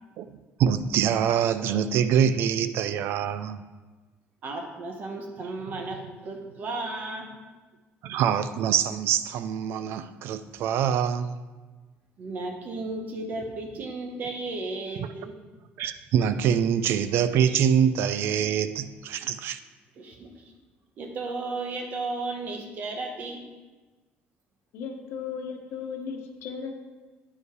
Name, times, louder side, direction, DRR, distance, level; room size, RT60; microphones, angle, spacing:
voice 1, 0.6-3.6 8.0-11.4 15.0-15.1 15.8-19.6, right 8 dB, 60° right, 12 dB, 0.4 m, -24 dB
voice 2, 4.4-7.3 12.2-15.4 20.0-20.5 21.0-23.4, right 2 dB, 40° right, 3 dB, 1.2 m, -34 dB
voice 3, 24.7-26.7, left 6 dB, 70° left, 4 dB, 1.0 m, -36 dB
9.8 x 5.2 x 4.7 m, 1.3 s
cardioid pair, 165°, 4 cm